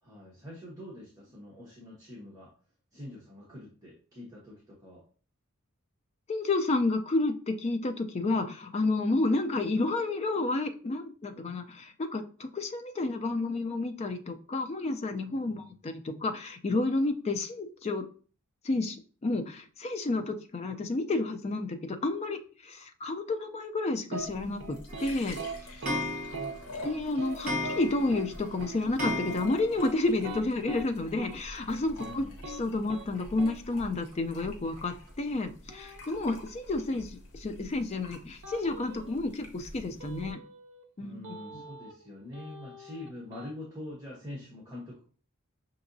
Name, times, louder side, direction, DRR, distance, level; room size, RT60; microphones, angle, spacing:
voice 1, 0.0-2.5 2.9-5.0 15.3-15.7 25.8-26.0 26.3-26.9 32.0-32.4 41.0-45.0, left 1 dB, 15° right, -6 dB, 1.1 m, -45 dB
voice 2, 6.3-18.0 18.6-25.4 26.8-32.2 32.6-40.4 41.0-41.2 41.5-41.6, left 2 dB, 30° left, 6 dB, 0.4 m, -30 dB
sound 1, 24.1-24.3 24.6-25.1 25.3-25.5 25.8-26.0 26.3-26.5 26.8-27.4 27.6-27.8 28.1-28.3 28.6-28.8 29.0-29.2 29.6-30.9 31.2-31.3 31.7-32.1 32.4-32.6 32.9-33.1 33.4-33.5 35.7-36.5 38.4-39.2 40.0-40.8 41.2-42.1 42.3-43.5, right 2 dB, 55° right, 0.7 m, -41 dB
sound 2, 24.2-40.3, left 1 dB, 80° left, 0.8 m, -48 dB
Clock, 24.9-30.0 30.3-30.4 30.6-30.7 30.9-31.0 32.2-32.3 32.8-32.9 33.5-33.6 34.1-34.2 34.8-34.9 35.4-35.5, left 1 dB, 40° right, 1.1 m, -36 dB
5.9 x 2.8 x 2.6 m, 0.41 s
head